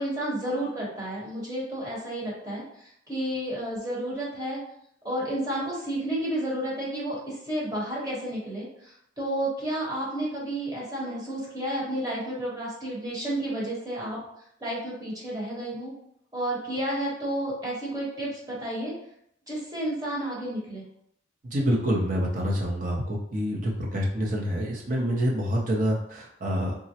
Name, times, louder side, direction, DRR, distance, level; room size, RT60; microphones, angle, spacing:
voice 1, 0.0-2.6 3.1-4.6 5.0-14.2 14.6-15.9 16.3-18.9 19.5-20.8, right 1 dB, 20° right, -6 dB, 1.0 m, -31 dB
voice 2, 21.4-26.8, equal, 45° right, -2 dB, 0.6 m, -27 dB
3.5 x 2.0 x 2.8 m, 0.73 s
head